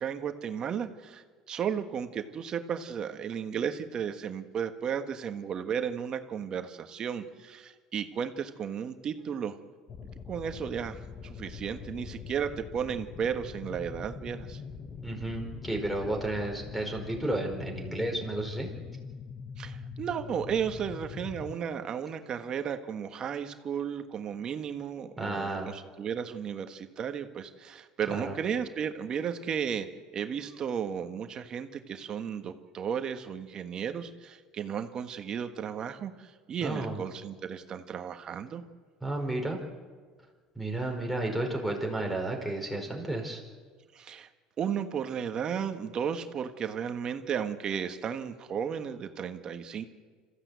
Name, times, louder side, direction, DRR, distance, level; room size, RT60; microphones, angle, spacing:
voice 1, 0.0-9.6 10.3-14.6 19.6-38.6 43.9-44.3 44.6-49.8, right 7 dB, 35° right, 7 dB, 1.4 m, -34 dB
sound 1, 9.9-21.6, left 6 dB, 30° left, 0.9 m, -43 dB
voice 2, 15.0-18.7 25.2-25.7 28.1-28.3 36.6-37.0 39.0-39.6 40.5-43.4, right 2 dB, ahead, 4 dB, 4.6 m, -32 dB
26.5 x 15.0 x 8.3 m, 1.5 s
cardioid pair, 130°, 2 cm